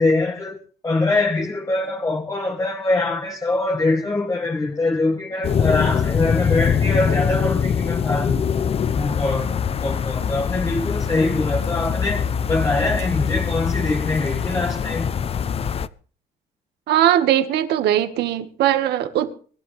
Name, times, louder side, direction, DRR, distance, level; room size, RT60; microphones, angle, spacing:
voice 1, 0.0-8.5 9.0-9.5 9.8-15.1, left 2 dB, 20° left, 1.8 m, -23 dB
sound 1, 5.4-15.9, left 7 dB, 35° left, 0.7 m, -23 dB
voice 2, 16.9-19.3, right 11 dB, 75° right, 1.8 m, -19 dB
25.0 x 11.5 x 3.5 m
cardioid pair, 110°, 17 cm